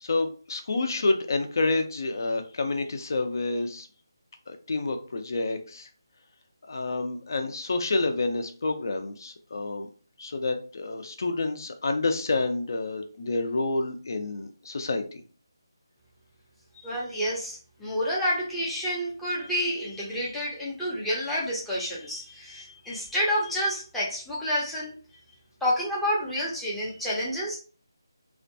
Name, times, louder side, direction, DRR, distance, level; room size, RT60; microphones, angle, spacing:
voice 1, 0.0-3.9 4.5-5.9 6.7-9.9 10.2-15.2, left 3 dB, 55° left, 6 dB, 0.5 m, -28 dB
voice 2, 16.8-24.9 25.6-27.6, equal, 5° left, -7 dB, 0.5 m, -29 dB
2.5 x 2.2 x 2.6 m, 0.38 s
figure-of-eight pair, 160°, 2 cm